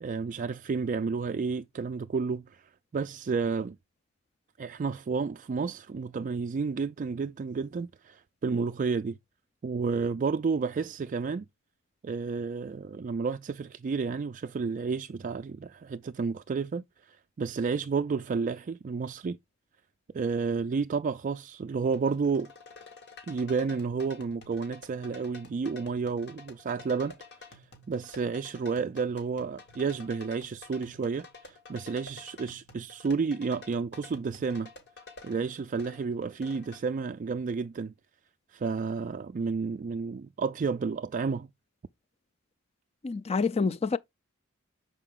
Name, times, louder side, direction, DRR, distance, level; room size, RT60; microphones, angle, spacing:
voice 1, 0.0-3.8 4.6-9.2 9.6-11.4 12.0-19.4 20.1-22.5 23.3-27.2 27.5-27.6 27.9-34.7 35.2-37.9 38.5-41.5, right 5 dB, 40° right, 0.3 m, -31 dB
sound 1, 21.9-36.8, left 3 dB, 55° left, 1.9 m, -50 dB
voice 2, 43.0-44.0, left 4 dB, 30° left, 0.4 m, -27 dB
6.7 x 4.9 x 3.6 m
head